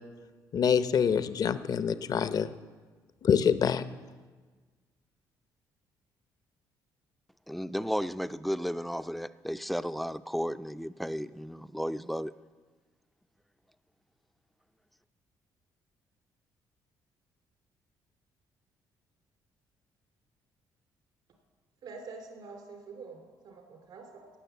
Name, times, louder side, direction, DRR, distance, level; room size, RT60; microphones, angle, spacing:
voice 1, 0.5-2.5 3.2-3.8, left 7 dB, 50° left, 13 dB, 0.7 m, -26 dB
voice 2, 7.5-12.3, equal, ahead, 13 dB, 0.4 m, -33 dB
voice 3, 21.8-24.3, right 4 dB, 70° right, 3 dB, 2.9 m, -46 dB
17.0 x 6.5 x 8.0 m, 1.4 s
cardioid pair, 80°, 8 cm